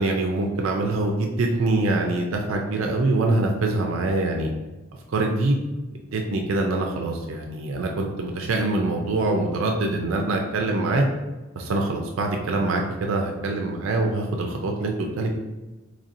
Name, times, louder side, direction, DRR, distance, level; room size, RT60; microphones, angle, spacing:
voice 1, 0.0-4.5 5.1-5.6 6.1-11.0 11.6-15.3, right 2 dB, 75° right, 1 dB, 0.4 m, -24 dB
4.1 x 3.2 x 2.6 m, 1.2 s
head